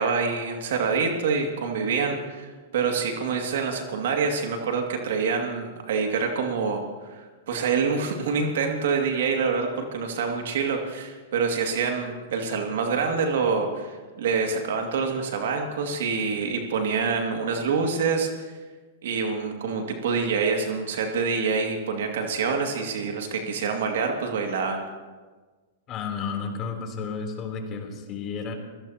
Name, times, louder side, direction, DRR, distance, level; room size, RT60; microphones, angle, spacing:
voice 1, 0.0-18.5 19.0-24.8, right 5 dB, 70° right, 2 dB, 2.3 m, -26 dB
voice 2, 25.9-28.5, left 5 dB, 35° left, 3 dB, 3.5 m, -32 dB
26.0 x 17.0 x 3.0 m, 1.3 s
hypercardioid pair, 120°, 0 cm